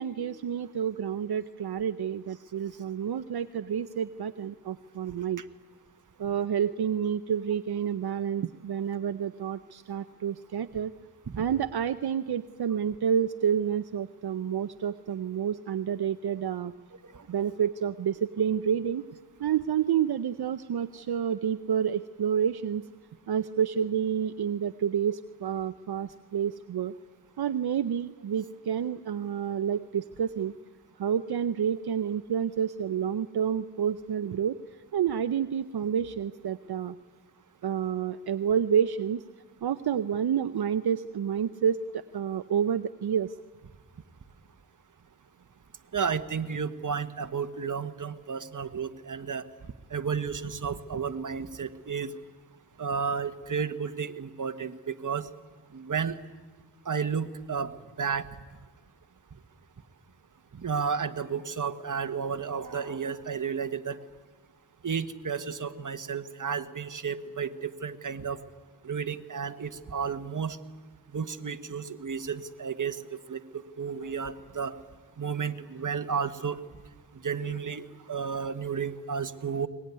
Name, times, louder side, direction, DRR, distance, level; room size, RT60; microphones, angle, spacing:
voice 1, 0.0-5.4 6.2-10.9 11.4-16.7 17.3-19.0 19.4-22.8 23.3-26.9 27.4-30.5 31.0-34.6 34.9-37.0 37.6-39.2 39.6-43.4, right 8 dB, 75° right, 11 dB, 0.7 m, -29 dB
voice 2, 45.9-49.4 49.9-52.1 52.8-55.3 55.7-56.2 56.8-58.3 60.5-64.0 64.8-68.4 68.8-70.6 71.1-74.8 75.2-76.6 77.2-79.7, right 6 dB, 50° right, 10 dB, 1.3 m, -32 dB
22.5 x 20.0 x 9.6 m, 1.3 s
cardioid pair, 55°, 39 cm